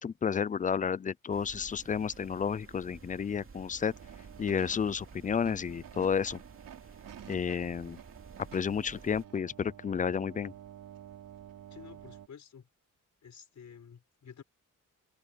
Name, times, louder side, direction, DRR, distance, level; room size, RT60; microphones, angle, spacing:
voice 1, 0.0-3.9 4.4-6.4 7.3-8.0 8.5-10.5, left 7 dB, 25° left, 0.3 m, -31 dB
sound 1, 1.3-9.3, right 5 dB, 40° right, 2.6 m, -52 dB
sound 2, 3.9-12.3, right 10 dB, 90° right, 3.2 m, -51 dB
voice 2, 11.7-12.7 13.2-14.4, left 7 dB, 60° left, 6.5 m, -51 dB
open air
wide cardioid pair, 130°, 33 cm